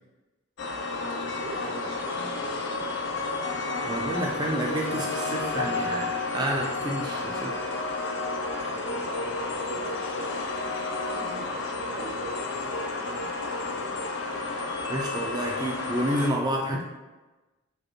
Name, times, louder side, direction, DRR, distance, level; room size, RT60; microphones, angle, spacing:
sound 1, 0.6-16.3, left 3 dB, 55° left, 0.5 m, -31 dB
voice 1, 1.0-3.4 8.6-14.3, right 2 dB, 80° right, -3 dB, 1.2 m, -43 dB
voice 2, 3.8-7.6 14.9-16.8, right 1 dB, 20° right, -1 dB, 0.4 m, -29 dB
5.0 x 2.2 x 4.4 m, 1.2 s
head